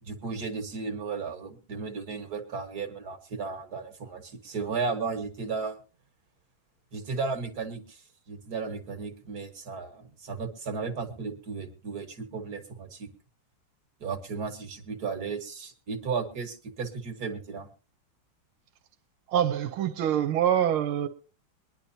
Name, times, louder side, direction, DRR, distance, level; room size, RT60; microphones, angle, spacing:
voice 1, 0.0-5.8 6.9-13.1 14.0-17.7, right 4 dB, 50° right, 1.9 m, -34 dB
voice 2, 19.3-21.1, right 10 dB, 85° right, 1.6 m, -25 dB
22.0 x 10.5 x 2.7 m
omnidirectional pair, 2.3 m